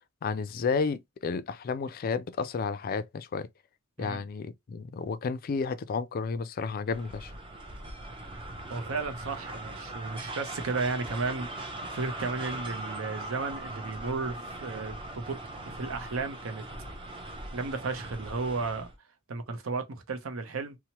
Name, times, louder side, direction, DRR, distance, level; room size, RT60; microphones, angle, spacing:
voice 1, 0.2-3.5 4.0-7.3, left 5 dB, 45° left, 0.3 m, -32 dB
sound 1, 6.9-18.9, right 2 dB, 25° right, 0.5 m, -40 dB
voice 2, 8.4-15.4 15.7-16.6 17.2-18.9 19.3-20.8, right 4 dB, 80° right, 0.6 m, -34 dB
2.8 x 2.0 x 2.8 m
head